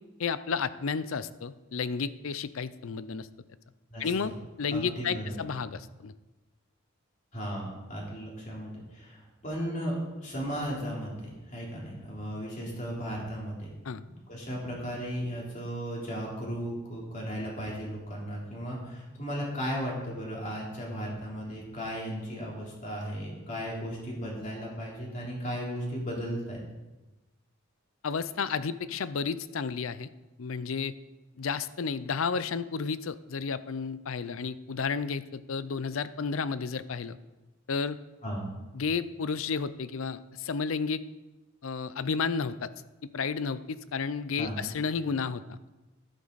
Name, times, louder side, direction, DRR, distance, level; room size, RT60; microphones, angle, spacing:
voice 1, 0.2-3.3 4.0-4.3 4.6-6.1 13.8-14.0 28.0-30.1 30.4-30.9 31.4-37.2 37.7-38.0 38.7-41.0 41.6-42.7 43.1-45.7, left 5 dB, 75° left, 15 dB, 0.5 m, -32 dB
voice 2, 3.9-4.4 4.7-5.4 7.3-13.7 14.3-26.6 38.2-38.5 44.4-44.6, equal, 35° left, -4 dB, 3.6 m, -36 dB
11.5 x 11.5 x 4.1 m, 1.1 s
head